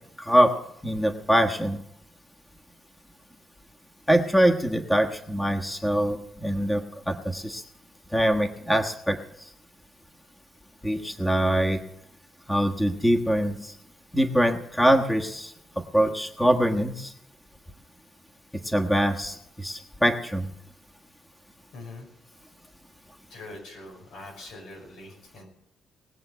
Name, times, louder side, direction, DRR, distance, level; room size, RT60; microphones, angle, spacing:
voice 1, 0.2-0.5 0.8-1.8 4.1-7.6 8.1-9.2 10.8-11.8 12.5-13.7 14.1-15.5 15.9-17.1 18.6-20.5, equal, 5° left, 3 dB, 1.4 m, -23 dB
voice 2, 21.7-22.1 23.3-25.5, left 2 dB, 90° left, 0 dB, 5.9 m, -43 dB
20.0 x 7.1 x 8.1 m, 0.78 s
cardioid pair, 90°, 0 cm